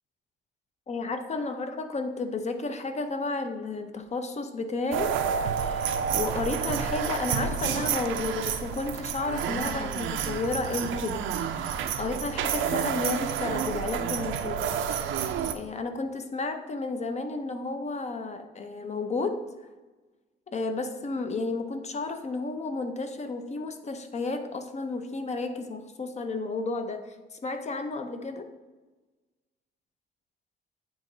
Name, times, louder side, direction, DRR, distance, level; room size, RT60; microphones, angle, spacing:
voice 1, 0.9-5.1 5.5-11.2 11.5-14.7 15.5-19.4 20.5-27.2 27.4-28.5, left 3 dB, 35° left, 7 dB, 0.7 m, -32 dB
sound 1, 4.9-15.5, right 8 dB, 80° right, 0.5 m, -29 dB
8.9 x 3.1 x 3.9 m, 1.2 s
cardioid pair, 90°, 20 cm